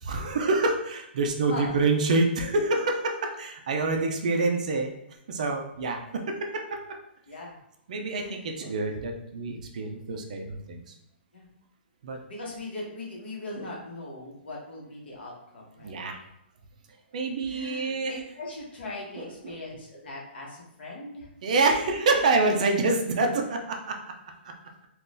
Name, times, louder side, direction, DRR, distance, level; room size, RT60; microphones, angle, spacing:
voice 1, 0.0-4.9 5.3-7.0 7.9-10.8 12.0-12.2 15.8-16.2 17.1-18.2 19.2-19.6 21.4-24.0 24.4-24.5, right 3 dB, 40° right, 3 dB, 0.3 m, -27 dB
voice 2, 1.5-1.8 7.3-7.6 8.1-8.6 11.3-11.5 12.3-16.0 17.5-21.3 21.8-22.6, left 2 dB, 65° left, -3 dB, 1.1 m, -40 dB
3.8 x 2.3 x 2.5 m, 0.79 s
hypercardioid pair, 180°, 6 cm